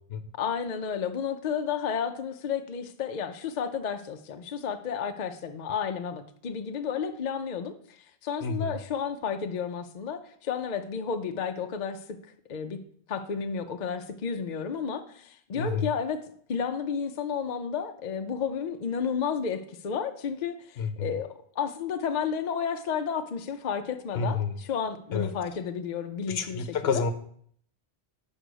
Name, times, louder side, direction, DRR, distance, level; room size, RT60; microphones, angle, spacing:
voice 1, 0.4-12.0 12.5-12.8 13.1-16.2 16.5-21.3 21.6-27.0, left 7 dB, 50° left, 0.6 m, -32 dB
voice 2, 8.4-8.7 15.5-15.9 20.8-21.1 24.1-24.5 25.1-25.3 26.3-27.1, left 5 dB, 65° left, 0.9 m, -29 dB
6.4 x 5.4 x 5.1 m
omnidirectional pair, 1.2 m